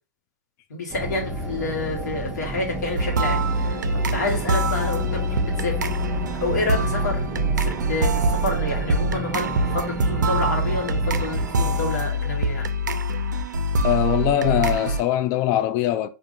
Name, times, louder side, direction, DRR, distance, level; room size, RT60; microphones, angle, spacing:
voice 1, 0.7-5.8 6.4-12.7, left 2 dB, 70° left, 1.2 m, -29 dB
sound 1, 0.9-11.9, right 2 dB, 10° right, 0.7 m, -32 dB
sound 2, 3.0-15.0, right 1 dB, 75° right, 0.4 m, -24 dB
voice 2, 13.8-16.1, left 13 dB, 35° left, 0.4 m, -22 dB
3.7 x 2.5 x 2.5 m
figure-of-eight pair, 110°, 10 cm